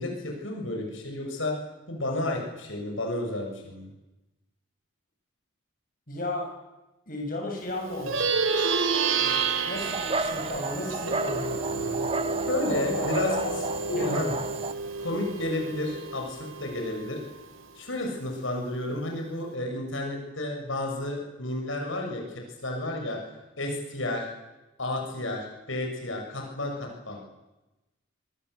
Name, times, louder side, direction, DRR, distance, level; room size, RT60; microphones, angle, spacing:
voice 1, 0.0-1.6 1.9-3.9 12.5-13.3 13.9-14.3 15.0-17.2 17.8-23.2 23.6-24.3 24.8-27.2, left 1 dB, 75° left, 2 dB, 7.1 m, -31 dB
voice 2, 6.1-6.5 7.1-8.2 9.2-12.1 12.6-13.1 13.4-13.6 13.9-14.3, left 1 dB, 45° left, 0 dB, 7.6 m, -34 dB
Plucked string instrument, 7.9-17.6, right 4 dB, 85° right, 2.9 m, -30 dB
Dog, 9.8-14.7, right 3 dB, 30° right, 1.0 m, -33 dB
26.5 x 23.5 x 8.3 m, 1.0 s
head